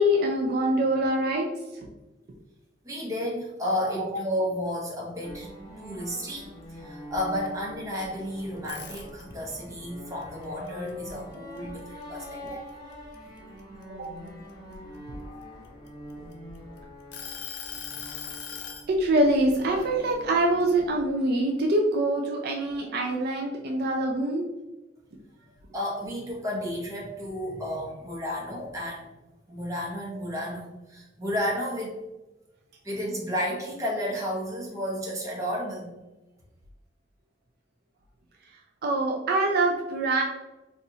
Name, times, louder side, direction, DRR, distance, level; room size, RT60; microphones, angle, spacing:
voice 1, 0.0-1.5 12.5-12.6 13.9-14.1 18.9-24.4 38.8-40.2, right 1 dB, 55° right, 1 dB, 0.4 m, -24 dB
voice 2, 2.8-5.5 5.8-12.4 25.7-29.1 29.5-32.0 32.8-35.9, equal, 20° right, -3 dB, 0.9 m, -32 dB
sound 1, 5.2-21.2, equal, 20° left, 0.9 m, -44 dB
sound 2, 8.6-9.5 10.0-11.8 12.2-12.5 12.9-14.7 15.4-16.6 17.1-18.9, left 7 dB, 65° left, 0.5 m, -39 dB
4.1 x 2.5 x 2.7 m, 1.1 s
head